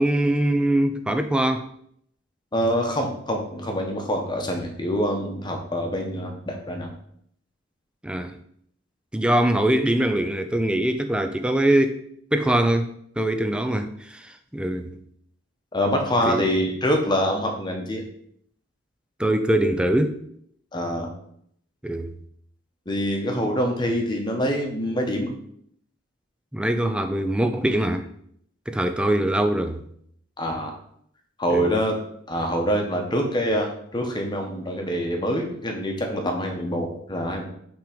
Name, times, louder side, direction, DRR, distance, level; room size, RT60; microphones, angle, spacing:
voice 1, 0.0-1.7 8.0-8.4 9.1-12.0 12.3-12.9 13.2-15.0 16.3-16.4 19.2-20.2 21.8-22.1 26.5-28.1 28.7-29.8 31.5-31.6, right 1 dB, 5° right, 7 dB, 0.4 m, -22 dB
voice 2, 2.5-6.9 15.7-18.0 20.7-21.1 22.9-25.3 30.4-30.7 31.4-31.9 32.3-37.4, equal, 20° left, 2 dB, 1.0 m, -25 dB
5.9 x 3.6 x 5.1 m, 0.68 s
head